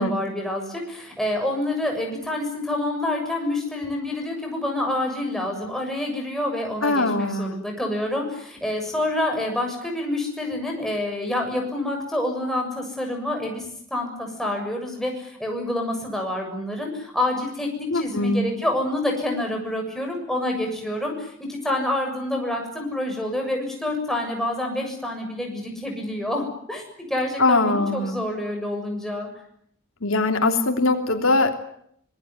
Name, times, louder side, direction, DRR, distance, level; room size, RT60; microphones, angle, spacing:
voice 1, 0.0-26.8 27.1-29.3, left 1 dB, ahead, 1 dB, 7.1 m, -27 dB
voice 2, 6.8-7.5 17.9-18.5 27.4-28.2 30.0-31.5, left 2 dB, 85° left, 4 dB, 3.2 m, -21 dB
25.5 x 20.0 x 9.6 m, 0.69 s
head